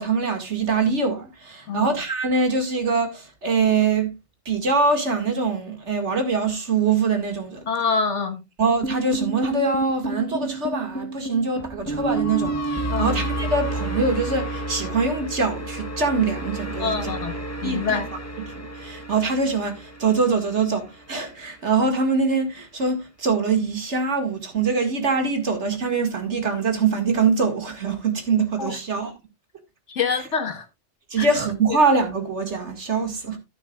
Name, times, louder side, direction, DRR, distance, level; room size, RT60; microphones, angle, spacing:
voice 1, 0.0-4.1 4.5-7.7 8.6-17.1 17.6-18.0 18.5-29.1 30.2-30.3 31.1-33.4, right 4 dB, 75° right, 2.4 m, -23 dB
voice 2, 7.7-8.4 12.9-13.1 16.8-17.3 17.6-18.1 28.6-28.7 29.9-30.6 31.2-31.3, left 5 dB, 80° left, 1.8 m, -25 dB
sound 1, 8.8-21.0, right 2 dB, 15° left, 1.1 m, -30 dB
11.5 x 10.0 x 2.4 m
omnidirectional pair, 1.2 m